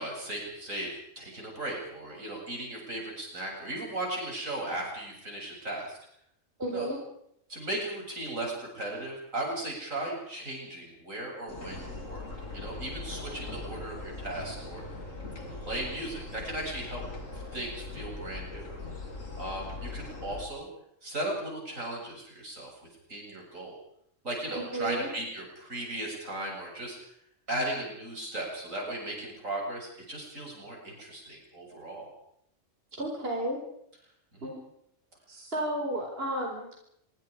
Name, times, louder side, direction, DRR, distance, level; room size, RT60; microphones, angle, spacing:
voice 1, 0.0-6.0 6.7-6.9 7.5-12.2 12.5-14.8 15.4-17.0 17.3-18.7 19.4-20.7 21.0-22.7 23.1-23.8 24.2-27.0 27.5-32.1 34.3-34.5, right 1 dB, 85° right, -1 dB, 8.6 m, -36 dB
voice 2, 6.6-7.0 24.5-25.1 32.9-33.6 34.4-34.6 35.3-36.8, right 1 dB, 50° right, 0 dB, 4.7 m, -33 dB
sound 1, 11.5-20.5, left 3 dB, 85° left, 4.3 m, -40 dB
26.5 x 24.0 x 5.1 m, 0.73 s
omnidirectional pair, 1.3 m